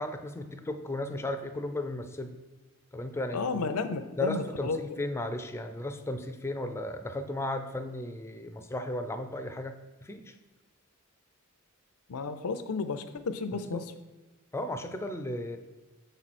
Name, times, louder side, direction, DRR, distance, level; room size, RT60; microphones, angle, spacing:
voice 1, 0.0-2.4 2.9-3.7 4.2-10.3 13.7-13.8 14.5-15.6, left 1 dB, 10° left, 7 dB, 0.4 m, -35 dB
voice 2, 3.3-4.8 12.1-13.8, left 4 dB, 80° left, 10 dB, 0.5 m, -32 dB
6.7 x 4.4 x 4.2 m, 1.2 s
head